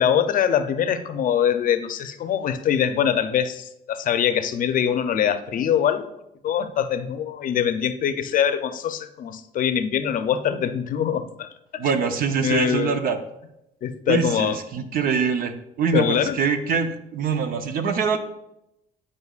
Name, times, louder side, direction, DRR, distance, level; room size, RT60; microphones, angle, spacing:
voice 1, 0.0-6.1 6.4-11.9 12.4-13.0 13.8-14.6 15.9-16.4, left 9 dB, 55° left, 9 dB, 0.6 m, -23 dB
voice 2, 11.8-13.2 14.1-18.2, right 6 dB, 60° right, 7 dB, 0.8 m, -24 dB
9.6 x 5.0 x 2.4 m, 0.85 s
cardioid pair, 110°, 17 cm